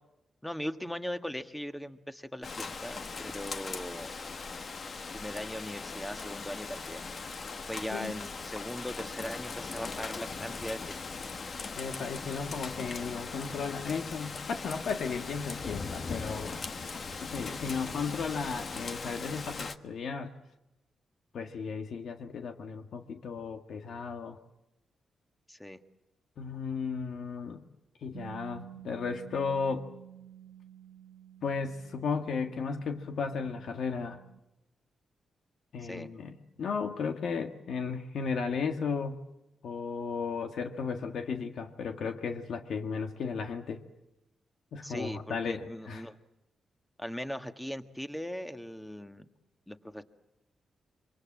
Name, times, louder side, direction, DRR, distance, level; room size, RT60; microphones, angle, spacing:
voice 1, 0.4-4.1 5.1-7.0 7.7-10.8 25.5-25.8 35.8-36.1 44.8-46.2 47.0-49.3 49.7-50.0, equal, 5° left, 8 dB, 1.6 m, -39 dB
Rain, 2.4-19.8, left 4 dB, 45° left, 1.4 m, -39 dB
voice 2, 11.8-16.5 17.2-20.3 21.3-24.4 26.4-27.7 28.0-29.9 31.4-34.2 35.7-39.2 39.6-43.8 44.7-46.1, left 5 dB, 75° left, 6 dB, 1.7 m, -35 dB
Bass guitar, 28.1-34.4, right 10 dB, 90° right, 1.1 m, -51 dB
26.0 x 25.0 x 7.6 m, 0.94 s
cardioid pair, 105°, 0 cm